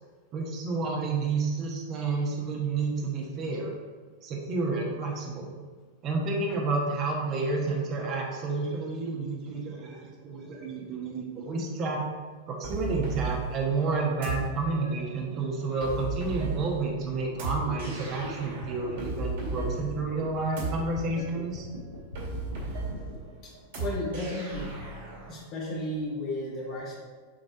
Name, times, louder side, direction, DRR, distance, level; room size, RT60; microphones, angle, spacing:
voice 1, 0.3-3.7 4.2-5.5 6.0-12.0 12.5-21.7, right 3 dB, 35° right, -1 dB, 1.2 m, -30 dB
sound 1, 12.6-25.3, right 3 dB, 55° right, 2.1 m, -36 dB
sound 2, 17.2-23.1, equal, 85° left, 1.4 m, -40 dB
voice 2, 23.8-24.7 25.3-26.9, left 1 dB, 35° left, -4 dB, 2.0 m, -33 dB
7.5 x 3.9 x 4.7 m, 1.5 s
figure-of-eight pair, 90°, 0 cm